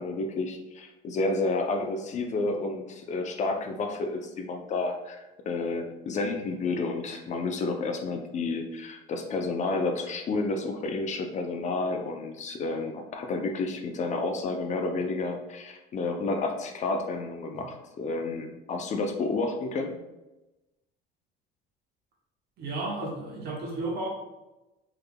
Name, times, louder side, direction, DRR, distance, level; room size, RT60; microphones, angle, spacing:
voice 1, 0.0-5.2 5.5-20.0, left 3 dB, 40° left, 4 dB, 0.5 m, -30 dB
voice 2, 22.6-24.1, right 2 dB, 60° right, -1 dB, 1.2 m, -33 dB
3.5 x 3.3 x 2.2 m, 1.0 s
cardioid pair, 110°, 19 cm